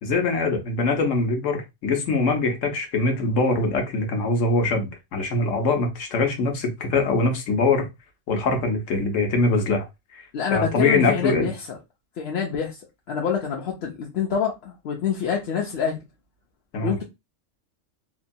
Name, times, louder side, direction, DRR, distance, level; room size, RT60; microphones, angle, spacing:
voice 1, 0.0-7.9 8.3-9.9 10.1-10.2 10.5-11.5 16.7-16.9, left 3 dB, 75° left, 1.1 m, -23 dB
voice 2, 10.3-11.8 12.2-12.8 13.1-16.0 16.8-17.0, left 7 dB, 60° left, 0.7 m, -26 dB
2.8 x 2.2 x 2.6 m
omnidirectional pair, 1.3 m